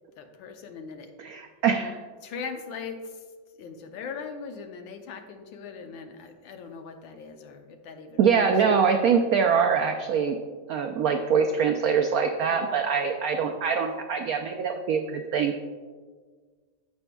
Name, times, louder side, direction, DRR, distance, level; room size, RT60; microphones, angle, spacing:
voice 1, 0.2-1.1 2.2-3.3 3.6-8.8 12.5-12.6, left 5 dB, 85° left, 6 dB, 1.5 m, -40 dB
voice 2, 1.2-2.0 8.2-10.4 10.7-15.5, right 6 dB, 85° right, 4 dB, 0.7 m, -24 dB
15.0 x 5.4 x 2.3 m, 1.5 s
omnidirectional pair, 2.1 m